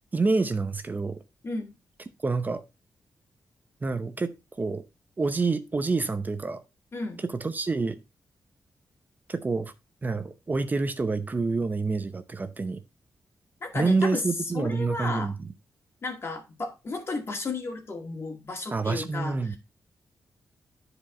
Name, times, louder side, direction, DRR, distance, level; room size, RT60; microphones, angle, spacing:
voice 1, 0.1-1.2 2.2-2.6 3.8-4.8 5.2-6.6 7.2-8.0 9.3-9.7 10.0-12.8 13.7-15.5 18.7-19.6, right 3 dB, 30° right, 0.7 m, -27 dB
voice 2, 6.9-7.2 13.6-14.2 14.5-15.3 16.0-19.6, left 3 dB, 45° left, 2.2 m, -33 dB
9.8 x 5.0 x 4.1 m
cardioid pair, 90°, 6 cm